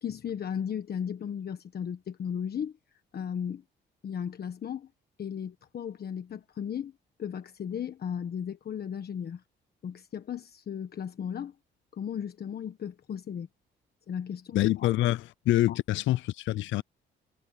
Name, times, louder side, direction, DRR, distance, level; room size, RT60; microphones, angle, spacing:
voice 1, 0.0-2.7 3.1-3.6 4.0-4.9 5.2-6.9 7.2-9.4 9.8-11.5 11.9-13.5 14.1-14.9 15.7-15.8, left 8 dB, 50° left, 1.3 m, -35 dB
voice 2, 14.5-16.8, left 15 dB, 75° left, 0.4 m, -26 dB
cardioid pair, 90°, 20 cm